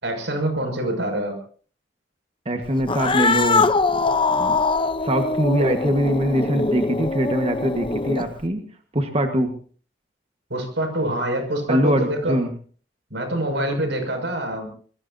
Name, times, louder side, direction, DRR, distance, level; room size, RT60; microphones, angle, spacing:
voice 1, 0.0-1.4 10.5-12.4 13.1-14.7, right 1 dB, 90° right, 5 dB, 6.3 m, -25 dB
voice 2, 2.4-3.7 4.3-4.6 5.0-8.6 8.9-9.5 11.7-12.5, right 1 dB, 35° right, 5 dB, 1.5 m, -22 dB
Cat, 2.8-8.4, left 3 dB, 30° left, 0.7 m, -22 dB
25.0 x 21.0 x 2.7 m, 0.43 s
head